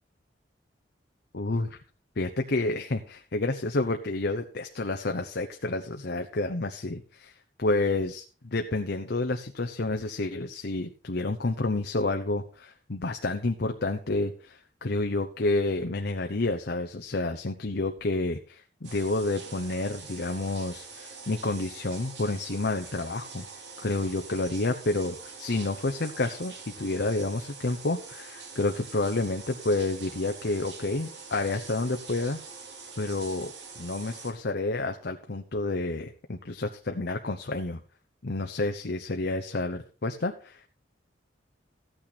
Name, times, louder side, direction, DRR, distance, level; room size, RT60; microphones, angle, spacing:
voice 1, 1.3-1.8 2.2-7.3 7.6-23.4 23.8-32.4 33.0-37.8 38.2-40.6, left 2 dB, 60° left, 5 dB, 0.9 m, -29 dB
sound 1, 18.8-34.3, right 5 dB, 65° right, 2.7 m, -44 dB
14.5 x 8.9 x 4.2 m, 0.38 s
head